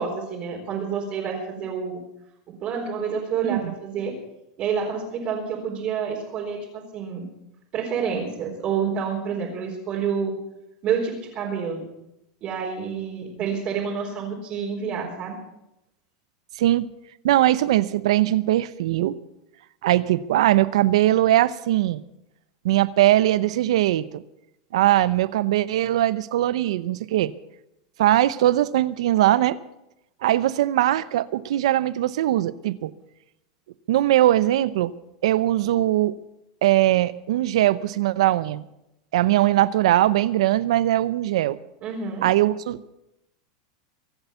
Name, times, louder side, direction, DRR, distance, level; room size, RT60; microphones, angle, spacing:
voice 1, 0.0-2.0 2.6-4.1 4.6-7.3 7.7-10.3 10.8-11.9 12.4-15.4 41.8-42.2, right 6 dB, 40° right, -4 dB, 4.1 m, -28 dB
voice 2, 3.4-3.7 16.6-16.9 17.2-19.2 19.8-22.0 22.6-24.2 24.7-27.3 28.0-29.6 30.2-32.9 33.9-34.9 35.2-36.1 36.6-38.6 39.1-41.6 42.2-42.9, right 14 dB, 80° right, 17 dB, 0.8 m, -20 dB
23.5 x 8.1 x 7.0 m, 0.88 s
supercardioid pair, 135°, 3 cm